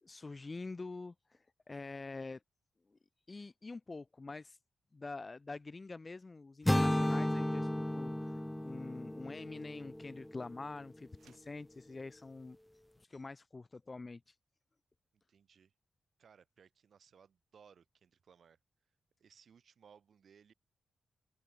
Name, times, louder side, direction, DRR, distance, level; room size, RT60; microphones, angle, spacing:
voice 1, 0.0-2.4 3.3-4.6 4.9-12.6 13.0-14.4, left 3 dB, 35° left, 1.2 m, -46 dB
sound 1, 6.7-10.7, left 1 dB, 10° left, 0.4 m, -34 dB
sound 2, 11.1-11.6, right 9 dB, 85° right, 4.8 m, -67 dB
voice 2, 15.3-15.7 16.2-18.6 19.2-20.5, right 7 dB, 65° right, 6.1 m, -63 dB
open air
cardioid pair, 65°, 0 cm